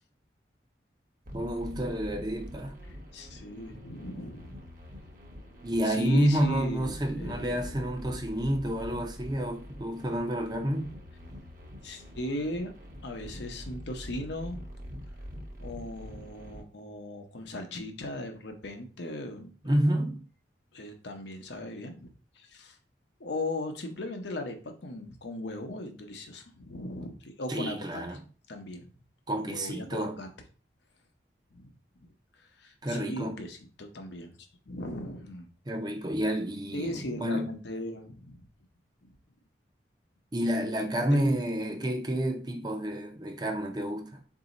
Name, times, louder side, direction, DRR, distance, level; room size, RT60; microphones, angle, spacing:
sound 1, 1.2-16.6, equal, 45° right, 0.9 m, -44 dB
voice 1, 1.3-2.8 5.6-10.9 19.6-20.2 27.5-28.2 29.3-30.2 32.8-33.5 35.7-37.5 40.3-44.2, equal, 25° right, 0.5 m, -29 dB
voice 2, 3.1-4.5 5.8-7.7 11.8-12.7 13.0-14.6 15.6-19.5 20.7-22.8 23.2-28.0 28.5-28.9 29.4-30.3 31.5-31.7 32.6-34.4 34.7-35.5 36.7-38.4 41.1-41.2, left 1 dB, 75° left, 0.7 m, -38 dB
4.0 x 2.7 x 3.9 m
head